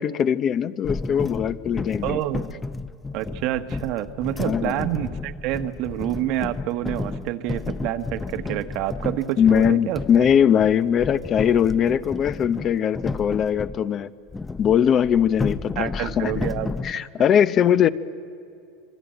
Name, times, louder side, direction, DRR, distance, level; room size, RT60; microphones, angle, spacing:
voice 1, 0.0-2.2 4.4-4.8 9.4-14.1 14.6-16.4 16.8-17.9, left 8 dB, 35° left, 13 dB, 0.8 m, -21 dB
sound 1, 0.8-13.8 14.3-16.9, left 3 dB, 15° left, 0.6 m, -32 dB
voice 2, 2.0-2.6 3.1-10.0 15.8-17.1, right 13 dB, 60° right, 10 dB, 1.2 m, -28 dB
25.5 x 24.0 x 9.0 m, 2.6 s
supercardioid pair, 125°, 0 cm